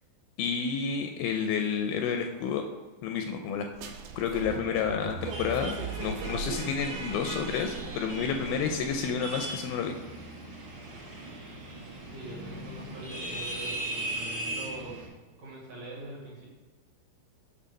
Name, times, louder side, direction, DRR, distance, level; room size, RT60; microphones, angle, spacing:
voice 1, 0.4-2.6 3.0-3.7 4.1-10.0, left 6 dB, 80° left, 5 dB, 2.2 m, -30 dB
sound 1, 3.7-9.3, right 5 dB, 85° right, 2.6 m, -39 dB
sound 2, 5.3-15.1, right 2 dB, 70° right, 1.2 m, -38 dB
voice 2, 12.1-15.1 15.4-16.4, right 2 dB, 50° right, -6 dB, 2.3 m, -43 dB
8.3 x 3.3 x 6.3 m, 1.2 s
omnidirectional pair, 4.4 m